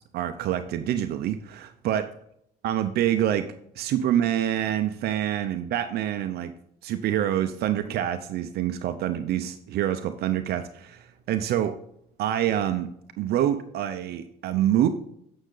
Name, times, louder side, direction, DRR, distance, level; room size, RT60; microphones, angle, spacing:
voice 1, 0.1-2.1 2.6-3.5 3.8-6.5 6.8-11.7 12.2-12.9 13.2-14.9, right 11 dB, 70° right, 9 dB, 0.7 m, -26 dB
9.0 x 6.4 x 3.9 m, 0.71 s
cardioid pair, 110°, 17 cm